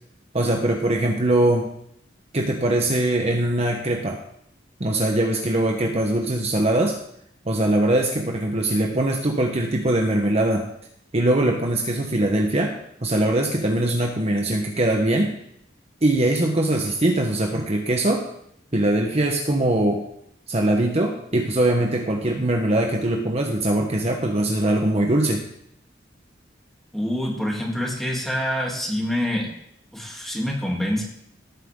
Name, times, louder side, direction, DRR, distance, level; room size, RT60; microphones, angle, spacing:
voice 1, 0.3-1.7 2.3-4.2 4.8-7.0 7.5-10.7 11.1-15.4 16.0-18.3 18.7-20.1 20.5-25.5, right 1 dB, 35° right, 2 dB, 1.2 m, -22 dB
voice 2, 26.9-29.5 29.9-31.0, equal, ahead, -3 dB, 3.1 m, -26 dB
17.5 x 9.3 x 3.8 m, 0.73 s
head